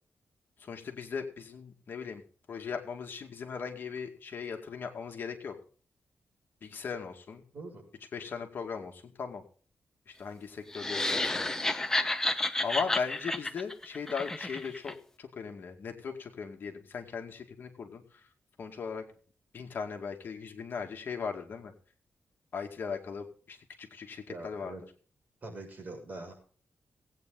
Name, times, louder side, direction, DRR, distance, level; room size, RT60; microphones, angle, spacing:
voice 1, 0.6-2.2 2.5-5.6 6.6-7.4 8.1-9.4 10.1-11.5 12.6-18.3 18.6-19.0 19.5-21.7 22.5-24.7, left 5 dB, 55° left, 3 dB, 2.3 m, -38 dB
voice 2, 7.5-7.8 24.3-24.8 25.4-26.3, right 2 dB, 40° right, 1 dB, 6.4 m, -43 dB
sound 1, 10.7-14.9, left 2 dB, 10° left, 0.9 m, -31 dB
18.5 x 9.1 x 3.9 m, 0.43 s
wide cardioid pair, 160°, 4 cm